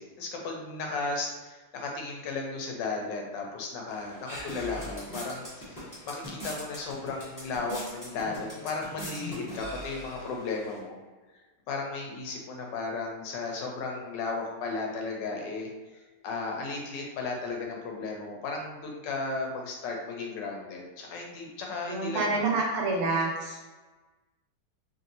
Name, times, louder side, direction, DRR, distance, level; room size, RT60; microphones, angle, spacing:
voice 1, 0.0-11.0 11.7-22.5, left 3 dB, 85° left, 0 dB, 1.3 m, -35 dB
sound 1, 3.9-10.8, equal, 20° left, 0.6 m, -42 dB
voice 2, 21.9-23.6, right 3 dB, 80° right, -1 dB, 1.4 m, -28 dB
3.2 x 2.6 x 2.7 m, 1.3 s
omnidirectional pair, 1.9 m